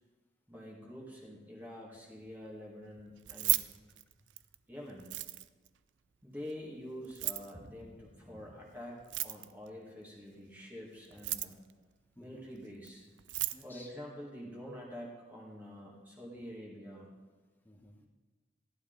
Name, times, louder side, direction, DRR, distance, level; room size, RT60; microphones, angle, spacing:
voice 1, 0.5-3.6 4.7-5.1 6.2-11.6 12.2-13.1 13.6-17.1, equal, 10° right, -4 dB, 2.1 m, -47 dB
Keys jangling, 3.2-4.6 5.0-5.7 7.0-7.5 9.0-9.7 11.0-11.7 12.9-13.0 13.2-13.6, right 17 dB, 85° right, 0.5 m, -34 dB
voice 2, 7.5-8.6 12.2-12.5 13.5-13.9 17.6-18.1, left 1 dB, 10° left, 1 dB, 1.2 m, -55 dB
14.5 x 11.0 x 4.0 m, 1.3 s
head